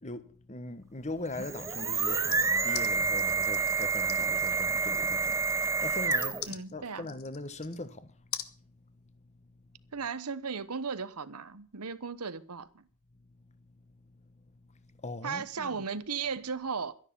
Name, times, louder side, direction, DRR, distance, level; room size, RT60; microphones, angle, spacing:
voice 1, 0.0-8.1 14.9-15.8, left 2 dB, 30° left, 1.3 m, -41 dB
sound 1, 1.3-6.6, right 4 dB, 15° right, 0.7 m, -29 dB
sound 2, 2.3-7.9 8.3-8.5, left 11 dB, 70° left, 1.3 m, -42 dB
voice 2, 6.5-7.1 9.9-12.8 15.2-16.9, right 5 dB, 90° right, 1.1 m, -36 dB
12.5 x 11.0 x 6.9 m
head